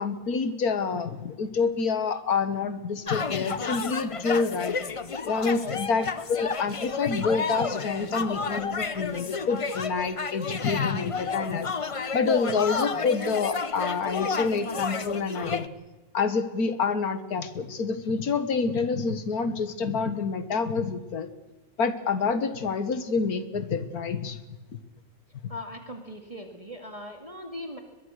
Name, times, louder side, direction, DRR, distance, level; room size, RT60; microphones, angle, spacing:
voice 1, 0.0-4.8 5.2-11.7 12.1-15.7 16.1-21.3 21.8-24.4 24.7-24.8 25.4-25.5, left 5 dB, 75° left, 11 dB, 2.0 m, -27 dB
sound 1, 3.1-15.7, left 5 dB, 35° left, 0.5 m, -31 dB
voice 2, 25.5-27.8, left 1 dB, 20° right, 3 dB, 2.3 m, -39 dB
22.0 x 22.0 x 6.6 m, 1.2 s
omnidirectional pair, 1.6 m